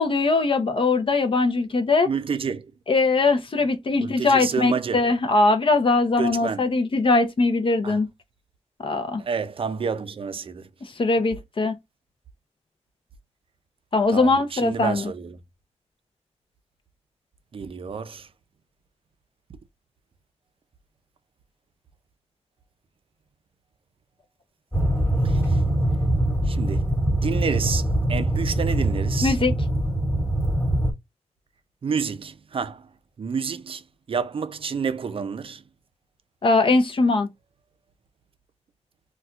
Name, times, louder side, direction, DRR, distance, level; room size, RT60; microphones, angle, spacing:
voice 1, 0.0-2.1 2.9-8.1 8.8-9.2 10.8-11.8 13.9-15.1 29.2-29.5 36.4-37.3, left 3 dB, 45° left, 0.6 m, -21 dB
voice 2, 2.0-2.7 4.0-5.0 6.2-6.6 7.8-8.0 9.2-10.7 14.1-15.4 17.5-18.3 25.2-25.6 26.5-29.4 31.8-32.8 33.2-33.8 34.1-35.6, right 6 dB, 50° right, 0.5 m, -29 dB
sound 1, 24.7-30.9, right 1 dB, 20° left, 1.3 m, -23 dB
4.1 x 2.3 x 2.3 m
wide cardioid pair, 110°, 12 cm